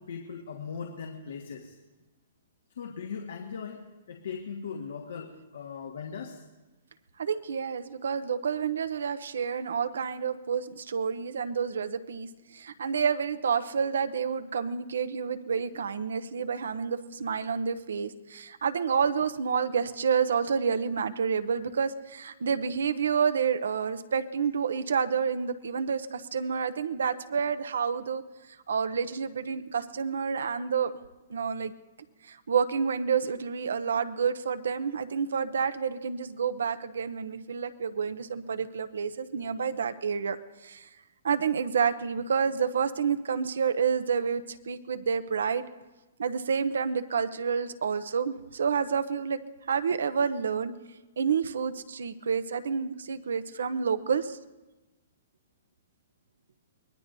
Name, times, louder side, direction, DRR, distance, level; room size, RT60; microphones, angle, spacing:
voice 1, 0.0-1.7 2.8-3.8 4.1-6.4, left 6 dB, 75° left, 2 dB, 1.5 m, -39 dB
voice 2, 7.2-28.2 28.7-30.9 31.3-31.7 32.2-40.4 40.6-40.9 41.2-45.6 46.2-49.4 49.7-50.7 51.2-54.4, right 6 dB, 90° right, 12 dB, 0.8 m, -29 dB
24.0 x 19.5 x 2.7 m, 1.1 s
hypercardioid pair, 175°, 0 cm